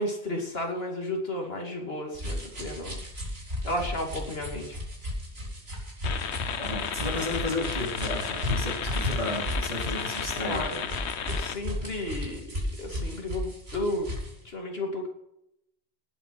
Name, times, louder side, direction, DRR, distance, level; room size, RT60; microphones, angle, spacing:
voice 1, 0.0-3.0 3.6-4.8 10.3-10.8 11.3-12.4 12.8-14.1 14.4-15.1, left 1 dB, 60° left, 1 dB, 2.8 m, -33 dB
sound 1, 2.1-14.4, left 1 dB, 65° right, 4.3 m, -34 dB
sound 2, 6.0-11.6, left 8 dB, 80° left, 1.1 m, -33 dB
voice 2, 6.6-11.0, left 1 dB, 35° right, -2 dB, 3.7 m, -33 dB
18.5 x 8.1 x 5.8 m, 0.83 s
omnidirectional pair, 1.1 m